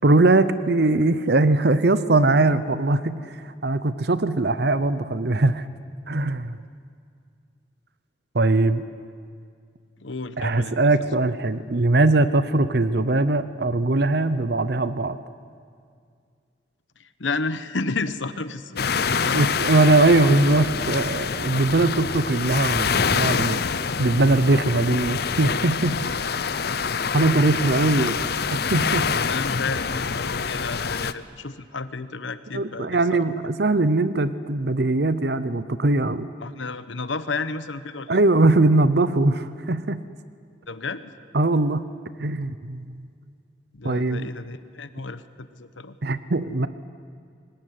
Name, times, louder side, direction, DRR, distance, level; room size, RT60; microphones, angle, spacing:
voice 1, 0.0-5.7 6.1-6.6 8.3-8.8 10.4-15.2 19.3-23.6 24.0-26.0 27.1-28.1 28.7-29.1 32.5-36.3 38.1-40.0 41.3-41.9 42.2-43.0 43.8-44.3 46.0-46.7, right 2 dB, 60° right, 14 dB, 0.8 m, -21 dB
voice 2, 10.0-10.9 17.0-19.5 27.8-28.1 29.3-33.3 36.4-38.2 40.7-41.1 43.7-46.0, left 3 dB, 85° left, 12 dB, 1.1 m, -32 dB
sound 1, 18.8-31.1, left 5 dB, 55° left, 0.7 m, -26 dB
25.0 x 20.0 x 9.6 m, 2.2 s
head